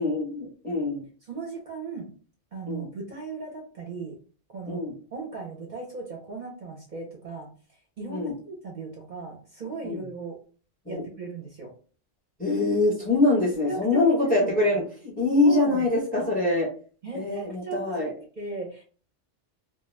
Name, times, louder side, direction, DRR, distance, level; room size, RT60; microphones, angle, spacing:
voice 1, 0.0-1.0 2.7-2.9 4.7-4.9 8.1-8.3 9.8-10.0 10.9-11.0 12.4-16.7 17.1-18.1, left 2 dB, 10° left, -1 dB, 0.6 m, -24 dB
voice 2, 1.2-2.1 2.5-4.2 4.5-7.5 8.0-10.4 10.9-11.7 13.7-14.5 15.4-15.8 17.0-18.8, right 4 dB, 50° right, -1 dB, 0.6 m, -37 dB
2.3 x 2.2 x 3.1 m, 0.40 s
omnidirectional pair, 1.2 m